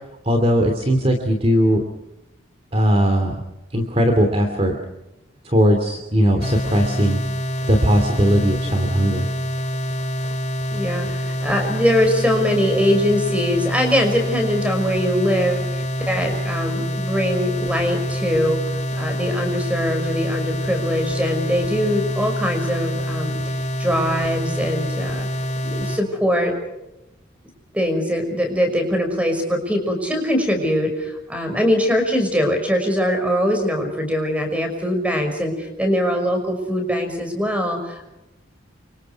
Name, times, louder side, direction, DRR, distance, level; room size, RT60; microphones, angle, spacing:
voice 1, 0.2-1.8 2.7-3.3 3.7-4.8 5.4-7.2 7.7-9.3, equal, 30° right, 5 dB, 2.9 m, -18 dB
sound 1, 6.4-26.0, equal, 35° left, 3.1 m, -26 dB
voice 2, 10.7-18.6 18.9-23.5 23.8-25.3 25.6-26.5 27.7-38.1, equal, 5° right, 5 dB, 5.7 m, -22 dB
30.0 x 25.5 x 4.7 m, 0.93 s
head